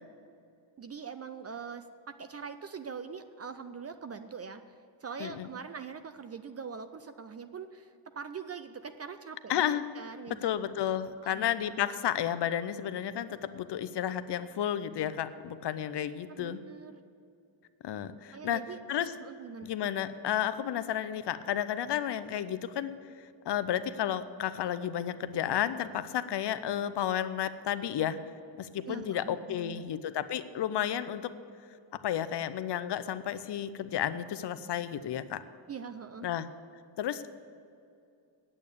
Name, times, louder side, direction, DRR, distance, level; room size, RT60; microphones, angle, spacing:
voice 1, 0.8-1.8 2.2-4.7 5.0-10.5 11.2-11.4 16.3-17.0 18.3-18.8 19.2-19.7 28.9-29.8 35.7-36.3, right 6 dB, 35° right, 10 dB, 0.4 m, -43 dB
voice 2, 9.5-9.9 10.4-16.6 17.8-18.6 18.9-19.1 19.6-23.0 23.5-28.2 28.6-31.3 31.9-35.4 36.2-36.5 37.0-37.3, left 10 dB, 55° left, 13 dB, 0.6 m, -32 dB
8.6 x 8.6 x 8.4 m, 2.5 s
cardioid pair, 135°, 49 cm